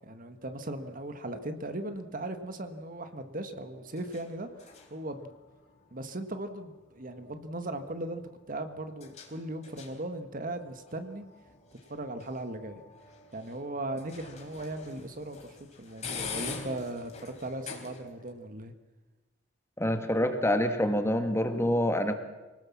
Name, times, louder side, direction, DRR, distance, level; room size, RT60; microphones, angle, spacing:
voice 1, 0.0-4.5 4.9-5.3 5.9-8.2 8.5-11.3 11.9-12.8 13.3-18.7, right 1 dB, 45° right, 8 dB, 1.6 m, -38 dB
sound 1, 0.9-18.3, left 5 dB, 40° left, 4.1 m, -47 dB
voice 2, 19.8-22.1, equal, 15° left, 7 dB, 1.8 m, -26 dB
26.5 x 18.5 x 7.2 m, 1.2 s
head